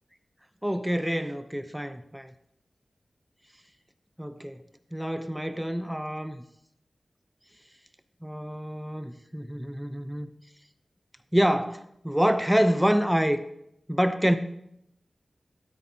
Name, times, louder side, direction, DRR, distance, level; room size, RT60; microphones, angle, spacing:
voice 1, 0.6-2.3 4.2-4.6 4.9-6.4 8.2-10.3 11.3-13.4 13.9-14.3, equal, 5° right, 0.6 m, -26 dB
13.0 x 8.2 x 2.8 m
cardioid pair, 50°, 0 cm